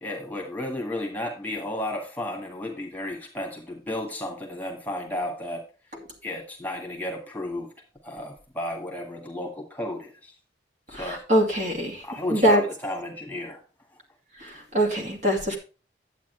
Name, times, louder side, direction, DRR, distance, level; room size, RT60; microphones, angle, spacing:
voice 1, 0.0-5.6 6.2-7.7 8.0-10.3 10.9-11.2 12.0-13.6, left 1 dB, 10° left, 1 dB, 1.7 m, -33 dB
voice 2, 10.9-12.0 12.3-12.6 14.4-15.6, equal, 40° right, 1 dB, 2.5 m, -23 dB
10.0 x 8.4 x 3.3 m, 0.33 s
head